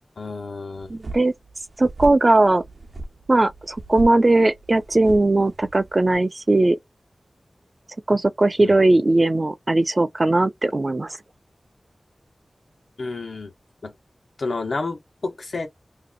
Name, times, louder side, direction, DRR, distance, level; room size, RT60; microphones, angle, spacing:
voice 1, 0.2-0.9 8.6-8.7 13.0-13.5 13.8-13.9 14.4-15.7, left 3 dB, 80° left, 1.0 m, -30 dB
sound 1, 0.8-6.2, right 2 dB, 70° right, 0.7 m, -37 dB
voice 2, 0.9-1.3 1.8-2.6 3.3-6.8 8.1-11.2, right 2 dB, 35° right, 0.5 m, -19 dB
2.8 x 2.5 x 3.8 m
wide cardioid pair, 70°, 0 cm